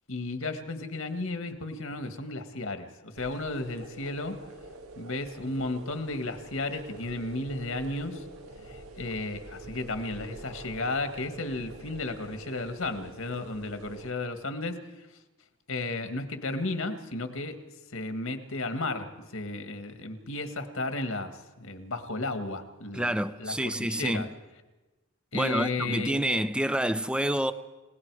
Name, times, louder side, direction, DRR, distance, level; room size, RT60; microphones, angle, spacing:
voice 1, 0.1-4.4 5.0-8.2 8.7-14.8 15.7-17.6 17.9-24.3 25.3-26.2, left 2 dB, 70° left, 1.7 m, -34 dB
sound 1, 3.1-14.1, right 2 dB, 85° right, 1.8 m, -46 dB
voice 2, 22.9-24.3 25.3-27.5, right 1 dB, 5° right, 0.6 m, -28 dB
30.0 x 18.0 x 4.8 m
head